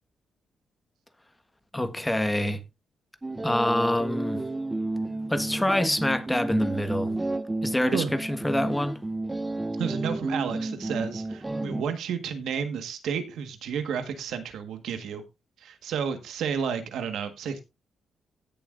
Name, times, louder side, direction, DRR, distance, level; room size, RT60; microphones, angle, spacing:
voice 1, 1.7-2.6 3.4-4.4 5.3-7.1 7.6-8.9, left 1 dB, 10° left, 1.4 m, -26 dB
sound 1, 3.2-11.8, right 2 dB, 15° right, 0.7 m, -32 dB
voice 2, 9.8-15.2 15.6-17.6, right 7 dB, 85° right, 1.6 m, -31 dB
16.5 x 7.0 x 2.6 m
cardioid pair, 90°, 0 cm